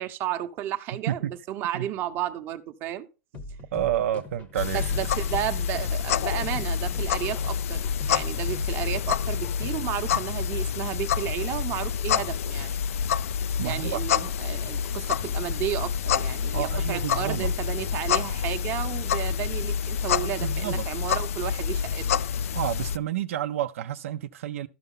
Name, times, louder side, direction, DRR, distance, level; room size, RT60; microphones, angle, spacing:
voice 1, 0.0-3.1 4.7-12.7 13.6-22.2, right 12 dB, 30° right, 0.8 m, -33 dB
sound 1, 3.3-9.7, left 3 dB, 20° left, 0.8 m, -42 dB
voice 2, 3.7-4.8 13.6-14.0 16.5-17.5 20.4-20.9 22.5-24.7, right 12 dB, 75° right, 0.5 m, -29 dB
sound 2, 4.6-23.0, left 8 dB, 85° left, 0.4 m, -28 dB
13.0 x 5.4 x 3.8 m
supercardioid pair, 160°, 7 cm